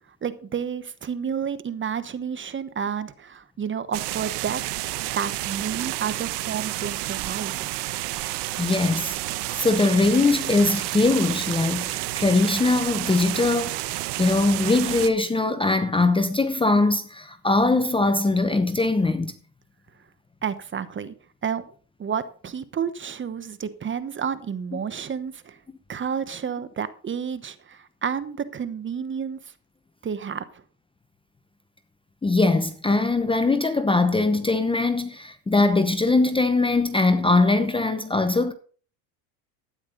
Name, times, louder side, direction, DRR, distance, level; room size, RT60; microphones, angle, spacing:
voice 1, 0.2-4.6 5.1-7.7 20.4-21.1 21.4-21.6 22.0-25.6 25.9-29.5 30.0-30.4, right 7 dB, 25° right, 1.1 m, -30 dB
sound 1, 3.9-15.1, right 17 dB, 55° right, 1.1 m, -30 dB
voice 2, 8.6-9.2 9.6-13.8 14.2-19.3 32.2-38.5, left 3 dB, 10° left, 0.8 m, -21 dB
12.5 x 9.7 x 3.9 m
supercardioid pair, 110°, 49 cm